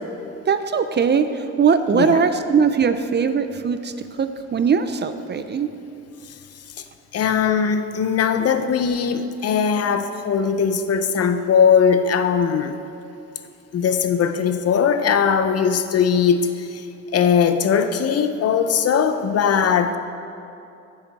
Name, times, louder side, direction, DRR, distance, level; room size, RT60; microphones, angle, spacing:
voice 1, 0.5-5.7, right 6 dB, 35° right, 10 dB, 0.5 m, -20 dB
voice 2, 1.9-2.2 7.1-12.8 13.7-16.8 17.1-20.0, left 7 dB, 55° left, 9 dB, 0.7 m, -19 dB
7.9 x 7.2 x 7.5 m, 2.7 s
cardioid pair, 90°, 30 cm